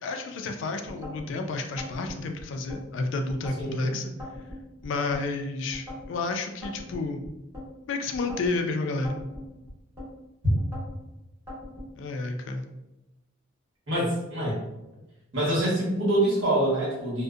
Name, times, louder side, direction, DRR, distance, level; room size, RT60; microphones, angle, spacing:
voice 1, 0.0-4.1 4.8-7.2 7.9-9.2 12.0-12.6, left 3 dB, 65° left, 5 dB, 0.3 m, -30 dB
sound 1, 0.9-1.3 1.8-2.8 3.3-3.7 4.2-5.3 5.7-6.1 6.6-7.7 8.1-8.6 9.0-10.1 10.6-11.0 11.5-11.9, left 1 dB, 15° right, 0.9 m, -40 dB
voice 2, 3.6-3.9 13.9-14.6 15.3-17.2, right 1 dB, 65° right, -7 dB, 1.2 m, -25 dB
2.6 x 2.1 x 2.3 m, 0.95 s
head